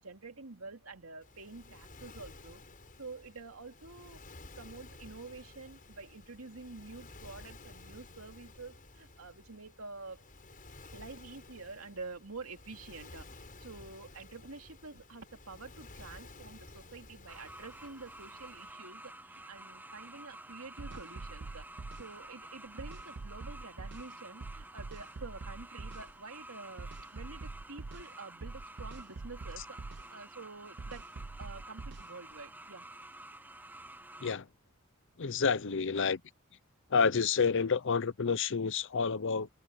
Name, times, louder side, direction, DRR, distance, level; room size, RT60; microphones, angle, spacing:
voice 1, 0.0-2.6 3.0-4.2 4.5-10.2 10.9-21.7 22.0-31.1 31.4-32.9, right 3 dB, 80° right, 2.7 m, -48 dB
Waves surf, 1.2-18.7, left 2 dB, 40° left, 5.9 m, -53 dB
sound 1, 17.3-34.4, right 1 dB, 10° right, 0.7 m, -51 dB
sound 2, 20.8-22.1 22.8-24.1 24.4-26.1 26.8-28.1 28.4-30.1 30.8-32.1, right 3 dB, 55° right, 0.7 m, -44 dB
voice 2, 35.2-36.2 36.9-39.5, left 5 dB, 60° left, 0.7 m, -29 dB
head